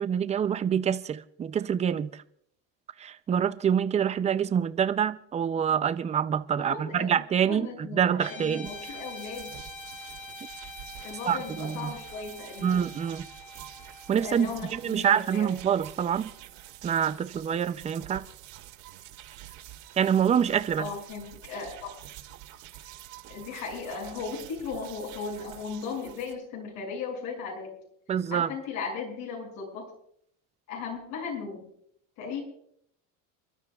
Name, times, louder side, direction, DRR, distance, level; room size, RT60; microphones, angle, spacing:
voice 1, 0.0-2.1 3.0-8.7 11.3-11.9 12.6-13.3 14.1-16.3 16.8-18.2 20.0-20.9 28.1-28.5, right 8 dB, 15° right, 0.4 m, -26 dB
voice 2, 6.7-7.1 7.5-9.5 11.0-12.8 14.2-15.5 20.8-21.9 23.3-27.7 28.3-29.9 30.7-31.7 32.2-32.4, left 5 dB, 65° left, 6.9 m, -37 dB
Guitar, 8.2-16.6, left 2 dB, 90° left, 6.7 m, -46 dB
sound 1, 8.6-26.3, right 13 dB, 65° right, 2.8 m, -47 dB
29.0 x 12.5 x 2.4 m
cardioid pair, 140°, 40 cm